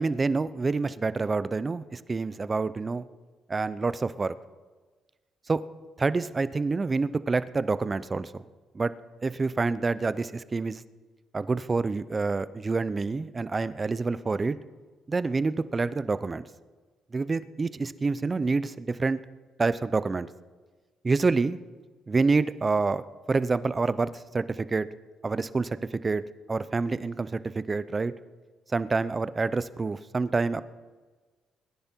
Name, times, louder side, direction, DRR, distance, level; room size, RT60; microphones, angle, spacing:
voice 1, 0.0-3.0 3.5-4.3 5.5-5.6 6.0-8.3 8.7-8.9 9.2-10.8 11.3-14.6 15.1-16.4 17.1-19.2 19.6-20.3 21.0-21.6 22.1-23.0 23.3-24.9 25.2-26.2 26.5-28.1 28.7-30.6, right 3 dB, 30° right, 15 dB, 0.7 m, -27 dB
21.5 x 10.0 x 4.5 m, 1.3 s
supercardioid pair, 70°, 0 cm